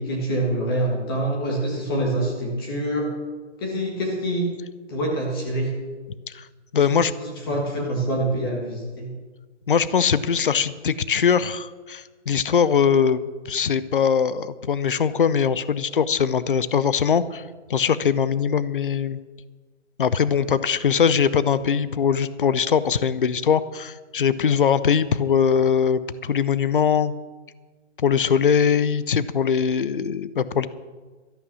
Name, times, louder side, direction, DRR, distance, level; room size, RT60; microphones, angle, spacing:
voice 1, 0.0-3.1 3.6-4.5 4.9-5.7 6.7-9.1, right 1 dB, 20° left, -1 dB, 1.8 m, -26 dB
voice 2, 6.7-7.1 9.7-17.4 17.7-19.2 20.0-27.1 28.0-30.7, left 7 dB, 45° left, 16 dB, 0.6 m, -21 dB
13.0 x 11.5 x 6.3 m, 1.4 s
hypercardioid pair, 170°, 37 cm